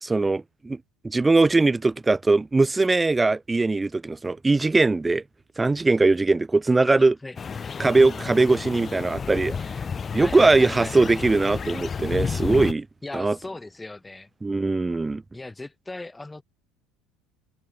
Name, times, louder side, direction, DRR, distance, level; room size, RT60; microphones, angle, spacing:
voice 1, 0.0-0.8 1.0-5.2 5.6-7.1 7.8-9.6 10.1-12.9 13.1-13.4 14.4-15.2, right 3 dB, 15° right, 0.5 m, -21 dB
voice 2, 6.8-7.4 8.0-8.5 10.2-11.0 13.0-14.3 15.3-16.4, left 2 dB, 15° left, 6.5 m, -38 dB
sound 1, 7.4-12.7, left 6 dB, 30° left, 5.1 m, -31 dB
hypercardioid pair, 70°, 0 cm